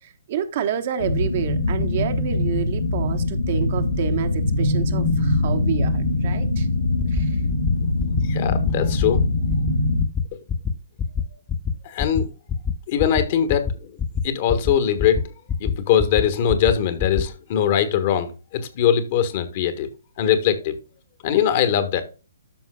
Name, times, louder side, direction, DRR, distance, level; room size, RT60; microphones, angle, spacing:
voice 1, 0.0-6.7 7.1-7.4, right 9 dB, 45° right, 1.2 m, -29 dB
sound 1, 1.0-10.0, left 2 dB, 75° left, 2.2 m, -22 dB
sound 2, 7.0-7.2 7.5-7.7 8.0-8.2 8.5-8.7 9.0-9.2 9.5-9.7 10.0-10.2 10.5-10.7 11.0-11.2 11.5-11.7 12.0-12.2 12.5-12.7 13.0-13.2 13.5-13.7 14.0-14.2 14.5-14.7 15.0-15.2 15.5-15.7 16.0-16.2 16.5-16.7 17.0-17.2, left 7 dB, 15° left, 0.9 m, -24 dB
voice 2, 8.3-9.2 11.8-12.3 12.9-13.9 14.2-15.3 15.6-19.9 20.2-20.7 21.2-22.0, left 9 dB, 40° left, 1.5 m, -21 dB
13.0 x 5.7 x 2.3 m
figure-of-eight pair, 130°, 0 cm